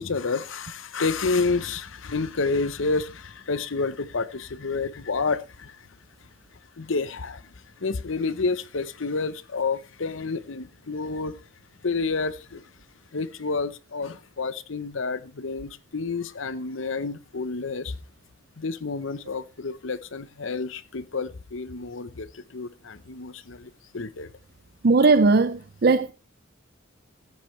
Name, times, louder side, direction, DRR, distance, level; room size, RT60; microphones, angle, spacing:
voice 1, 0.0-5.7 6.8-7.4 7.8-11.3 11.8-12.6 13.1-17.9 18.6-24.3, left 4 dB, 70° left, 0.8 m, -29 dB
voice 2, 24.8-26.1, right 3 dB, 50° right, 0.5 m, -18 dB
14.0 x 10.5 x 3.2 m
head